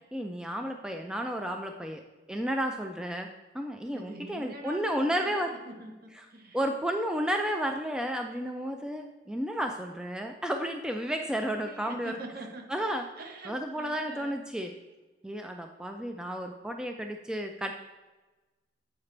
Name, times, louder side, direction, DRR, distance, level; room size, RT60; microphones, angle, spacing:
voice 1, 0.1-2.0 2.3-3.3 3.5-5.5 6.5-12.2 12.7-13.0 13.5-14.7 15.2-17.7, equal, 5° right, 4 dB, 0.3 m, -32 dB
voice 2, 3.9-6.6 11.1-12.8 13.2-14.4, right 1 dB, 55° right, 3 dB, 0.9 m, -45 dB
8.0 x 4.8 x 3.2 m, 1.2 s
head